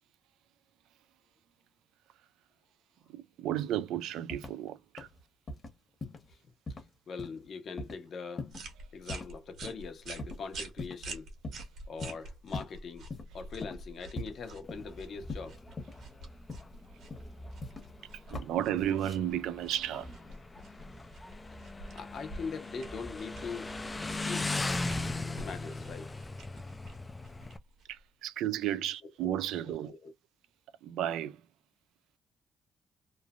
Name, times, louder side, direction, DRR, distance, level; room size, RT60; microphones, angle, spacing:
voice 1, 3.1-5.1 18.3-20.1 27.9-29.9 30.8-31.4, right 11 dB, 85° right, 0.4 m, -33 dB
sound 1, 4.3-4.7 5.0-5.2 5.5-5.7 6.0-6.3 6.7-6.9 7.2-7.5 7.8-8.0 8.4-8.7 9.1-9.3 9.6-9.8 10.2-10.4 10.8-11.1 11.4-11.6 12.0-12.7 13.1-13.3 13.6-13.9 14.2-15.0 15.3-16.1 16.5-16.8 17.1-17.9 18.3-18.5 18.8-19.2, left 2 dB, 35° left, 1.1 m, -41 dB
voice 2, 7.1-8.5 8.9-11.3 11.9-13.1 13.3-15.6 21.9-23.7 24.1-24.5 25.4-26.1 29.0-29.1 29.7-30.1, left 5 dB, 55° left, 0.9 m, -42 dB
sound 2, 8.5-28.1, right 2 dB, 70° right, 1.3 m, -48 dB
Motorcycle, 14.6-27.6, left 2 dB, 20° left, 0.4 m, -39 dB
3.1 x 2.1 x 2.4 m
cardioid pair, 90°, 0 cm